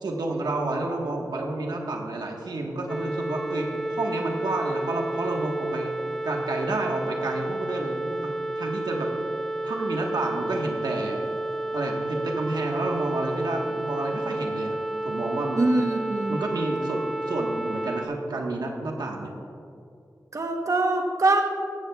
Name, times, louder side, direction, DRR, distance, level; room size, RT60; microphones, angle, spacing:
voice 1, 0.0-5.9 6.2-9.1 9.6-11.3 11.7-15.6 16.3-19.3, right 2 dB, 90° right, 1 dB, 1.3 m, -30 dB
sound 1, 2.9-18.1, right 2 dB, 5° left, 0.8 m, -31 dB
voice 2, 15.6-16.4 20.3-21.4, right 2 dB, 50° right, 3 dB, 0.9 m, -23 dB
15.0 x 14.5 x 2.3 m, 2.5 s
wide cardioid pair, 60°, 7 cm